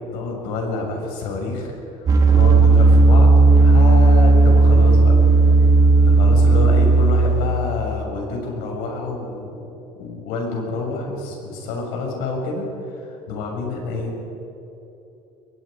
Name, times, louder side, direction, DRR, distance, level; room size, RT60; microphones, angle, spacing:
voice 1, 0.1-1.8 2.3-5.1 6.0-9.6 10.0-14.2, left 3 dB, 80° left, 0 dB, 7.0 m, -28 dB
sound 1, 2.1-7.8, right 3 dB, 25° right, 1.9 m, -13 dB
28.0 x 22.0 x 5.3 m, 2.9 s
cardioid pair, 170°, 15 cm